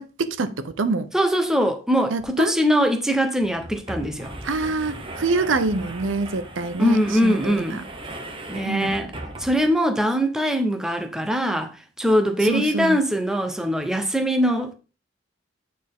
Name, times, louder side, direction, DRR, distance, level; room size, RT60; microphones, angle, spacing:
voice 1, 0.0-1.1 2.1-2.5 4.4-7.8 8.6-8.9 12.4-13.0, right 3 dB, 90° right, 0.7 m, -26 dB
voice 2, 1.1-4.3 6.8-7.8 8.5-9.1 9.4-14.7, equal, 5° right, 0.8 m, -22 dB
sound 1, 2.2-2.3 2.6-2.7 3.4-9.8, right 1 dB, 30° right, 1.1 m, -38 dB
8.4 x 4.4 x 3.7 m
head